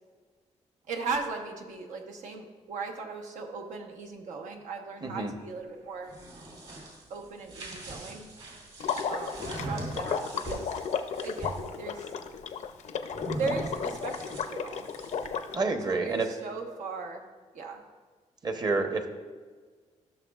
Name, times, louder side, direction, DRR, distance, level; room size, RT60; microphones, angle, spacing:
voice 1, 0.9-6.1 7.1-8.3 9.1-10.8 11.2-12.1 13.4-14.9 15.8-17.2 17.5-17.8, right 4 dB, 90° right, 2 dB, 1.1 m, -37 dB
voice 2, 5.0-5.3 15.5-16.3 18.4-19.1, right 3 dB, 35° right, 6 dB, 0.9 m, -28 dB
sound 1, 5.9-11.7 13.1-15.4, right 1 dB, 60° right, 2.8 m, -41 dB
Water / Liquid, 8.8-15.6, left 6 dB, 70° left, 0.6 m, -34 dB
15.0 x 6.4 x 2.4 m, 1.5 s
cardioid pair, 120°, 12 cm